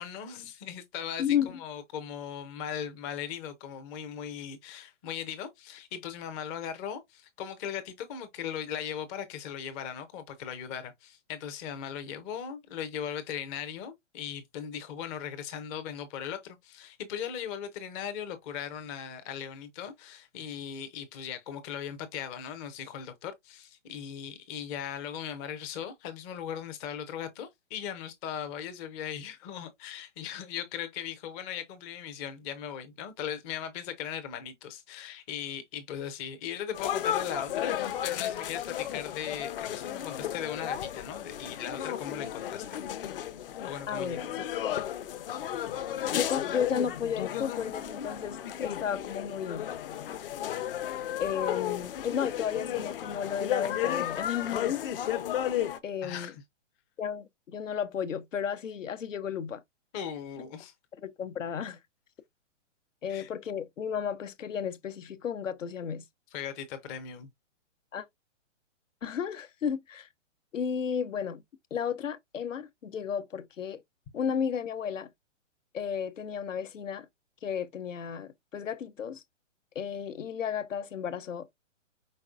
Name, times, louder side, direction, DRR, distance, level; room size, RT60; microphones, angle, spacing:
voice 1, 0.0-42.8 43.6-44.2 56.0-56.4 59.9-60.7 63.1-63.3 66.3-67.3, left 9 dB, 15° left, 0.5 m, -38 dB
voice 2, 1.2-1.6 43.9-44.2 45.7-45.8 46.1-49.7 51.2-54.8 55.8-56.3 57.0-59.6 61.0-61.8 63.0-66.0 67.9-68.0 69.0-70.1 70.5-71.4 71.7-73.8 74.1-75.1 75.7-77.1 77.4-79.2 79.7-81.5, left 8 dB, 85° left, 0.9 m, -33 dB
sound 1, 36.7-55.8, left 11 dB, 50° left, 0.7 m, -34 dB
5.3 x 4.1 x 2.4 m
hypercardioid pair, 145°, 37 cm